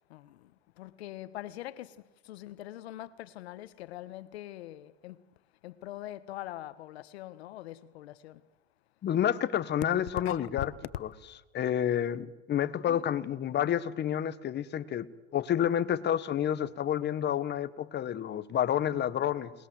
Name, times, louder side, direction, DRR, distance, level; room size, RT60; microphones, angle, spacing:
voice 1, 0.1-5.3 5.6-8.4 10.2-10.8 12.9-13.0, left 14 dB, 85° left, 1.4 m, -43 dB
voice 2, 9.0-10.7 11.5-15.1 15.3-19.5, left 10 dB, 35° left, 1.4 m, -29 dB
29.5 x 20.5 x 7.9 m
supercardioid pair, 110°, 31 cm